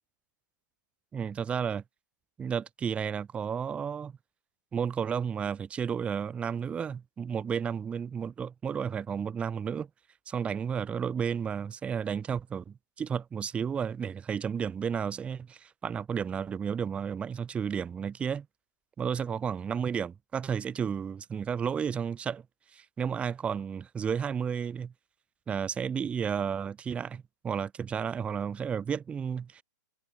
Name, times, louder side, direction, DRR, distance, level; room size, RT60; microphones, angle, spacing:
voice 1, 1.1-1.8 2.4-4.1 4.7-9.9 10.3-18.5 19.0-22.4 22.7-24.9 25.5-29.6, right 7 dB, 10° right, 0.3 m, -32 dB
hypercardioid pair, 135°, 10 cm